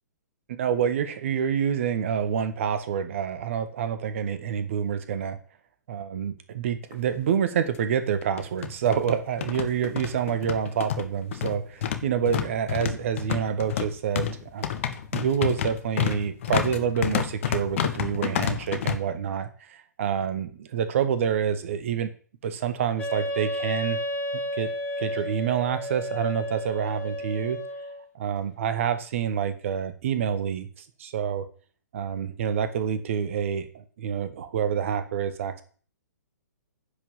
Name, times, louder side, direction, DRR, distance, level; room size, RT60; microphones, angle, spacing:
voice 1, 0.5-5.4 5.9-22.1 22.4-24.0 24.5-27.6 28.1-30.7 31.0-31.5 31.9-35.6, right 8 dB, 45° right, 11 dB, 1.6 m, -27 dB
sound 1, 6.9-7.0 7.3-7.4 8.2-18.9, left 9 dB, 45° left, 1.2 m, -29 dB
Wind instrument woodwind instrument, 23.0-28.0, equal, 15° left, 2.6 m, -32 dB
10.0 x 6.1 x 7.3 m, 0.42 s
figure-of-eight pair, 120°, 10 cm